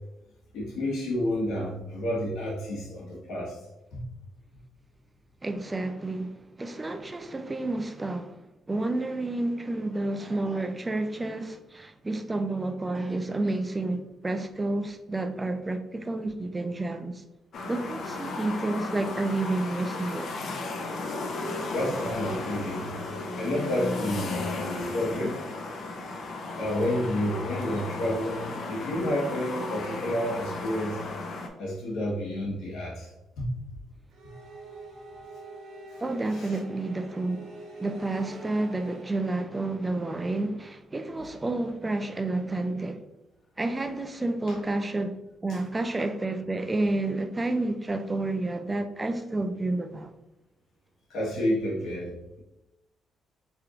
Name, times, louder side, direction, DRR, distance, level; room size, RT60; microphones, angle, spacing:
voice 1, 0.5-3.6 3.9-4.0 21.7-23.1 23.4-25.4 26.6-31.0 31.6-33.1 33.4-33.5 36.3-36.6 51.1-52.4, left 1 dB, 80° left, 1.4 m, -30 dB
voice 2, 5.4-8.4 8.7-17.2 17.7-20.3 36.0-43.0 43.6-50.1, right 2 dB, 20° right, 0.4 m, -30 dB
sound 1, 17.5-31.5, left 2 dB, 60° left, 0.7 m, -35 dB
sound 2, 34.1-39.0, right 2 dB, 80° right, 1.3 m, -45 dB
4.4 x 3.4 x 2.5 m
cardioid pair, 90°, 0 cm